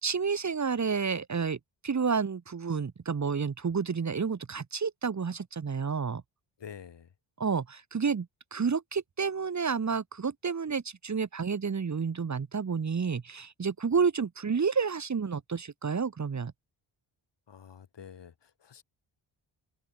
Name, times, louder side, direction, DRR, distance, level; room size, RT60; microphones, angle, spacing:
voice 1, 0.0-1.6 1.8-6.2 7.4-8.3 8.5-16.5, right 5 dB, 35° right, 1.8 m, -30 dB
voice 2, 6.6-7.1 17.5-18.8, left 7 dB, 55° left, 4.0 m, -48 dB
open air
wide cardioid pair, 165°, 49 cm